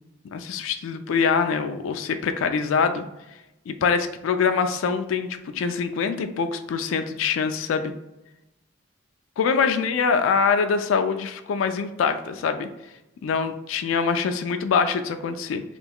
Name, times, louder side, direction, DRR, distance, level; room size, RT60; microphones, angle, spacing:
voice 1, 0.3-3.0 3.7-7.9 9.4-12.7 13.2-15.6, left 5 dB, 80° left, 8 dB, 0.3 m, -24 dB
3.3 x 2.2 x 3.5 m, 0.94 s
head